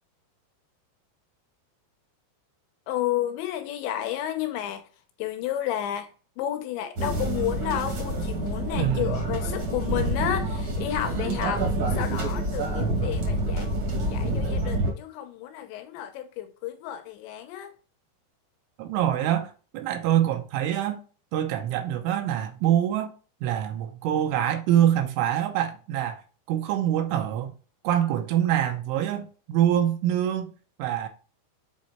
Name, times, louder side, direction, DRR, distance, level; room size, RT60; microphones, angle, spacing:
voice 1, 2.9-4.8 5.2-6.1 6.4-13.7 14.1-17.7, left 11 dB, 80° left, 2.8 m, -31 dB
sound 1, 7.0-14.9, right 1 dB, 50° right, 1.5 m, -27 dB
voice 2, 8.8-9.2 18.8-21.0 21.3-23.1 23.4-26.2 26.5-27.5 27.8-31.1, right 11 dB, 80° right, 3.4 m, -25 dB
7.9 x 4.3 x 4.3 m
omnidirectional pair, 5.6 m